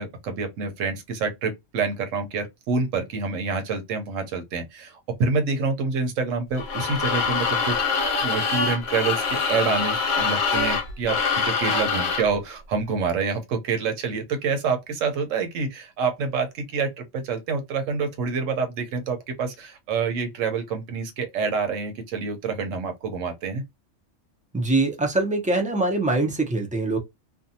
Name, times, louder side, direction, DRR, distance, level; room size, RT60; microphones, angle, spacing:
voice 1, 0.0-7.8 8.2-23.6, right 5 dB, 85° right, 1.1 m, -27 dB
sound 1, 6.6-12.3, left 5 dB, 65° left, 0.8 m, -24 dB
voice 2, 24.5-27.0, right 2 dB, 15° right, 0.3 m, -23 dB
2.5 x 2.3 x 2.7 m
omnidirectional pair, 1.3 m